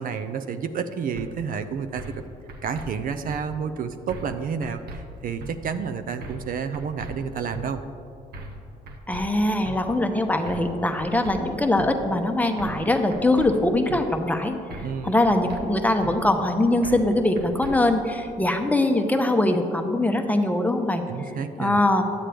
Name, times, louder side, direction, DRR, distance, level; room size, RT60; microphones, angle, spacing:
voice 1, 0.0-2.2 2.6-7.8 14.8-15.2 21.1-21.8, right 6 dB, 55° right, 9 dB, 0.5 m, -30 dB
sound 1, 1.2-1.3 2.0-2.2 2.5-2.9 3.3-3.4 4.1-4.4 4.6-5.0 5.4-5.5 6.2-6.5 6.7-7.1 7.5-7.7 8.3-8.6 8.9-9.2 9.6-9.8 10.5-10.7 11.0-11.4 11.8-11.9 12.6-12.9 13.1-13.5 13.9-14.0 14.7-15.0 15.2-15.6 16.0-16.1 16.8-17.1 17.4-17.7, right 1 dB, 75° right, 0.9 m, -38 dB
voice 2, 9.1-21.0 21.6-22.0, left 1 dB, 10° left, 5 dB, 0.8 m, -22 dB
10.0 x 7.4 x 3.4 m, 2.6 s
supercardioid pair, 70°, 17 cm